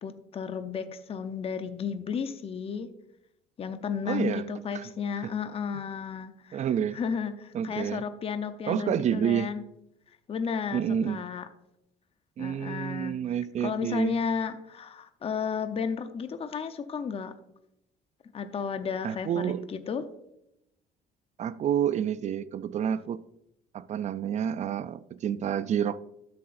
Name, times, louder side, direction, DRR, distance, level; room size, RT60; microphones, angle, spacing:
voice 1, 0.0-2.9 3.6-6.6 6.9-9.6 10.3-11.5 12.4-13.2 13.6-17.3 18.3-20.1, left 6 dB, 35° left, 10 dB, 0.7 m, -33 dB
voice 2, 4.1-4.4 4.7-4.8 5.2-5.3 6.5-7.0 7.5-8.0 8.7-9.5 10.7-11.2 12.4-14.1 19.0-19.7 21.4-23.2 23.7-26.0, right 9 dB, 45° right, 16 dB, 0.4 m, -29 dB
12.5 x 7.7 x 2.6 m, 0.82 s
cardioid pair, 110°, 17 cm